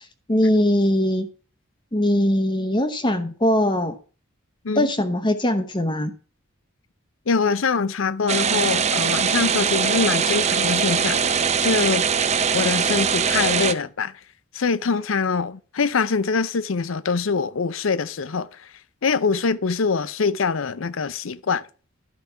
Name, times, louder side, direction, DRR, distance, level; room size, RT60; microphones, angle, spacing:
voice 1, 0.3-1.3 1.9-3.9 4.8-6.1, left 1 dB, 25° left, 0.9 m, -21 dB
voice 2, 7.3-12.1 12.5-14.1 14.5-18.7 19.0-21.6, left 5 dB, 80° left, 0.6 m, -24 dB
sound 1, 8.3-13.7, right 6 dB, 35° right, 0.6 m, -21 dB
12.0 x 5.2 x 5.7 m
head